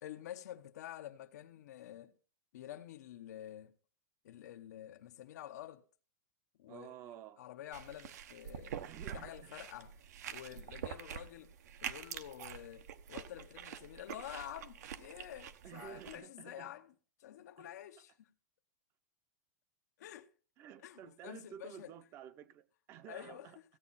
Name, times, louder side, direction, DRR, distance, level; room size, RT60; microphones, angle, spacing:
voice 1, 0.0-2.1 2.5-3.7 4.2-5.8 6.6-9.9 10.3-11.5 11.8-16.9 17.2-18.3 20.0-20.3 20.8-21.9 23.1-23.6, left 12 dB, 70° left, 1.0 m, -49 dB
voice 2, 6.7-7.4 8.8-9.5 15.6-16.7 17.6-17.7 20.6-23.6, right 10 dB, 25° right, 0.7 m, -52 dB
sound 1, 7.7-16.2, right 9 dB, 70° right, 1.1 m, -46 dB
16.0 x 8.6 x 4.1 m
supercardioid pair, 165°, 9 cm